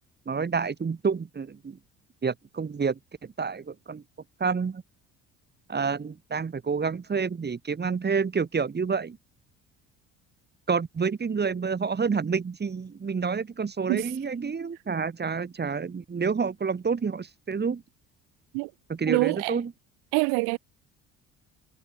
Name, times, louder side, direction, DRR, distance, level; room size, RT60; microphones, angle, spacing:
voice 1, 0.3-1.8 2.2-3.0 3.4-4.0 4.4-4.8 5.7-9.2 10.7-17.8 18.9-19.7, right 5 dB, 30° right, 2.1 m, -28 dB
voice 2, 19.1-19.6 20.1-20.6, right 33 dB, 85° right, 1.7 m, -25 dB
supercardioid pair, 80°, 35 cm